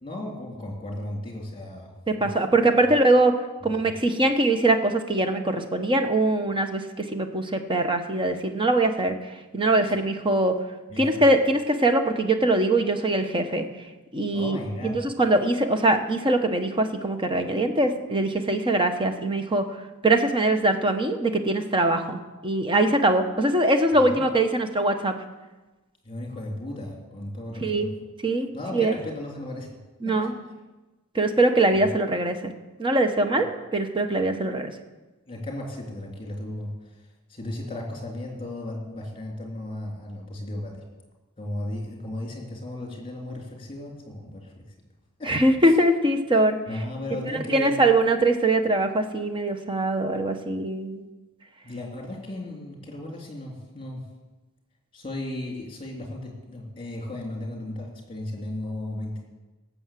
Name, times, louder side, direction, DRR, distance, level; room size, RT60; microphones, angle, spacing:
voice 1, 0.0-1.9 2.2-2.3 3.6-3.9 9.8-9.9 10.9-11.2 14.3-15.0 23.9-24.3 26.0-27.9 28.5-29.7 30.0-30.3 31.8-31.9 33.3-33.4 35.3-36.7 37.3-40.8 41.4-44.6 45.2-45.3 46.7-47.8 51.6-54.0 54.9-59.2, left 1 dB, 25° left, 0 dB, 3.4 m, -35 dB
voice 2, 2.1-3.4 3.6-9.2 9.5-10.6 11.0-13.6 14.1-14.6 14.8-19.7 20.0-25.2 27.6-27.9 28.2-28.5 28.7-28.9 30.0-30.3 31.1-32.5 32.8-33.5 33.7-34.7 45.3-46.6 47.5-51.1, right 2 dB, 25° right, 6 dB, 1.1 m, -22 dB
17.5 x 7.1 x 7.6 m, 1.2 s
head